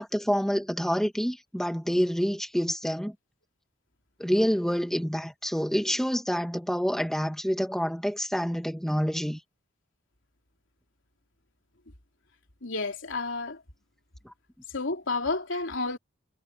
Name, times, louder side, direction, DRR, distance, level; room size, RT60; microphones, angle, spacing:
voice 1, 0.0-3.1 4.2-9.4, equal, ahead, 1.7 m, -27 dB
voice 2, 12.6-13.6 14.7-16.0, left 3 dB, 70° left, 3.1 m, -30 dB
head